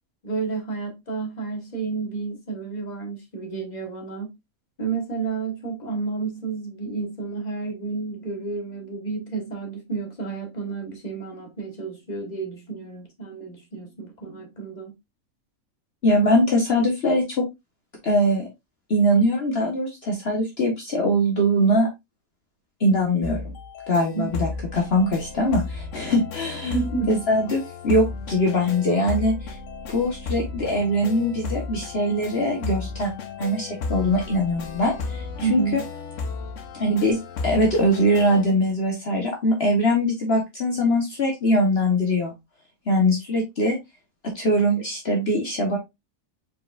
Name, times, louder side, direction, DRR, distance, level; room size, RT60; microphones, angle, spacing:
voice 1, 0.2-4.3 4.8-14.9 24.1-24.3 26.7-27.1 35.4-35.8, right 4 dB, 30° left, 1.5 m, -30 dB
voice 2, 16.0-17.4 18.0-18.5 18.9-21.9 22.8-23.5 23.9-26.8 27.1-29.5 29.9-33.1 33.4-35.8 36.7-37.2 37.4-42.3 42.9-43.8 44.2-45.8, equal, 50° left, 1.4 m, -22 dB
sound 1, 23.2-38.4, left 4 dB, 65° left, 1.2 m, -34 dB
4.7 x 4.5 x 2.5 m
omnidirectional pair, 1.5 m